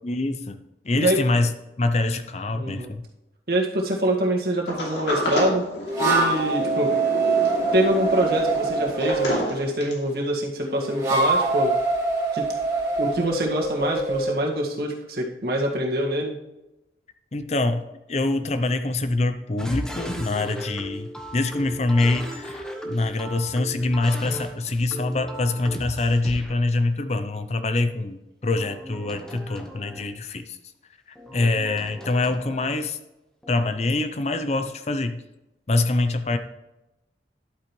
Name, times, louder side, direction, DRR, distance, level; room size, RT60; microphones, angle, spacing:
voice 1, 0.0-0.6 0.8-1.5 1.8-3.0 17.3-17.8 18.1-30.6 31.3-33.0 33.5-35.2 35.7-36.4, left 2 dB, 40° left, 10 dB, 0.6 m, -25 dB
voice 2, 2.5-2.9 3.5-5.7 6.0-6.9 7.7-11.7 12.3-12.4 13.0-16.4, right 1 dB, 60° right, -1 dB, 1.8 m, -25 dB
Sliding door, 4.7-10.1, left 1 dB, 85° left, 2.9 m, -29 dB
sound 1, 5.9-9.3 10.6-14.3, right 3 dB, 20° right, 3.0 m, -24 dB
sound 2, 19.6-26.6 28.4-30.1 31.2-32.8 33.4-33.7, equal, 5° left, 1.0 m, -37 dB
11.5 x 8.6 x 3.2 m, 0.95 s
head